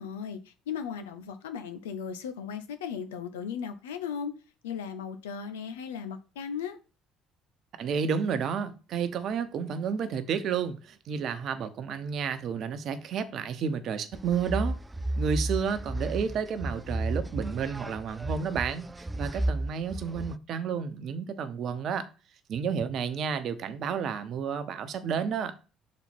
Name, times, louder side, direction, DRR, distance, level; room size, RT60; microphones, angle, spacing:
voice 1, 0.0-4.3 4.6-6.8, left 7 dB, 85° left, 0.7 m, -36 dB
voice 2, 7.8-14.8 15.2-18.8 19.2-22.1 22.5-25.5, right 6 dB, 55° right, 0.9 m, -31 dB
sound 1, 14.1-20.4, right 1 dB, 15° right, 0.4 m, -33 dB
6.2 x 4.4 x 4.3 m
hypercardioid pair, 60°, 0 cm